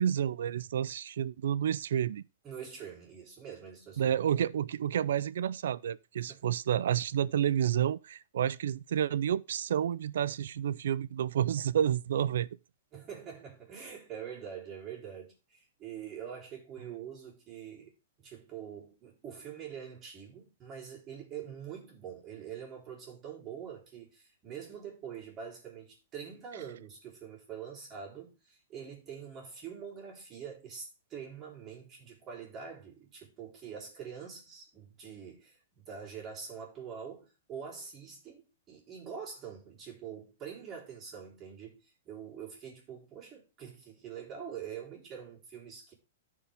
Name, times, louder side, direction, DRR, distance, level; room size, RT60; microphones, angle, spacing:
voice 1, 0.0-2.2 4.0-12.5, right 9 dB, 75° right, 0.4 m, -30 dB
voice 2, 2.4-4.1 6.3-6.4 12.9-17.9 18.2-45.9, right 7 dB, 20° right, 3.5 m, -45 dB
14.0 x 4.7 x 3.5 m
hypercardioid pair, 160°, 0 cm